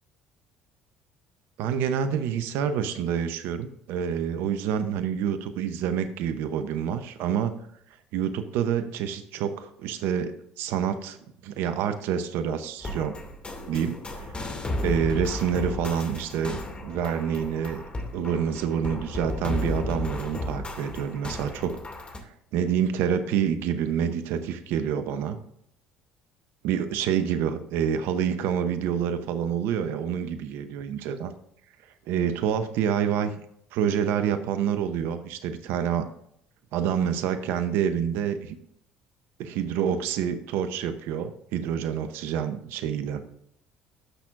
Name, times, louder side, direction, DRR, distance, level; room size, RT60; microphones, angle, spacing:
voice 1, 1.6-7.5 8.1-11.2 11.4-13.2 13.7-14.5 14.8-17.8 18.1-21.8 22.3-25.4 26.6-31.3 32.1-33.3 33.7-36.1 36.7-38.6 39.4-43.2, right 8 dB, 70° right, 10 dB, 0.8 m, -27 dB
sound 1, 12.8-22.2, left 2 dB, 30° left, 2.4 m, -34 dB
13.0 x 6.1 x 2.5 m, 0.71 s
hypercardioid pair, 65°, 4 cm